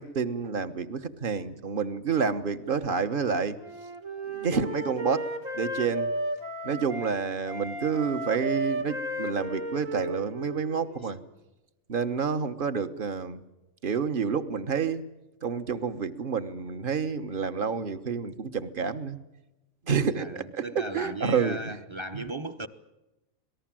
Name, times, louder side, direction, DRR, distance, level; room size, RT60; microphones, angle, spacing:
voice 1, 0.0-3.6 4.3-5.2 5.5-6.1 6.6-11.2 11.9-13.4 13.8-15.0 15.4-19.2 19.9-21.8 22.1-22.3, right 6 dB, 40° right, 1.3 m, -29 dB
Wind instrument woodwind instrument, 3.6-7.1 7.5-11.2, right 1 dB, 75° right, 2.5 m, -34 dB
voice 2, 20.2-22.7, right 2 dB, 25° right, 0.9 m, -36 dB
26.5 x 19.0 x 7.6 m
omnidirectional pair, 1.4 m